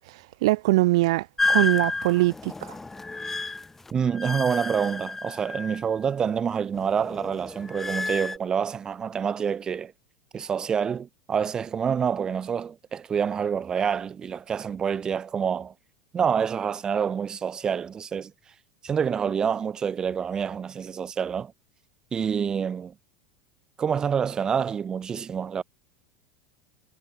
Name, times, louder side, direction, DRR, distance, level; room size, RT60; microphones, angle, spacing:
voice 1, 0.4-2.7, right 20 dB, 75° right, 1.0 m, -22 dB
sound 1, 1.4-6.1 6.4-8.4, left 3 dB, 10° left, 1.4 m, -30 dB
voice 2, 3.9-9.9 10.3-15.7 16.1-18.3 18.8-21.5 22.1-22.9 23.8-25.6, right 7 dB, 25° right, 3.1 m, -27 dB
supercardioid pair, 130°, 3 cm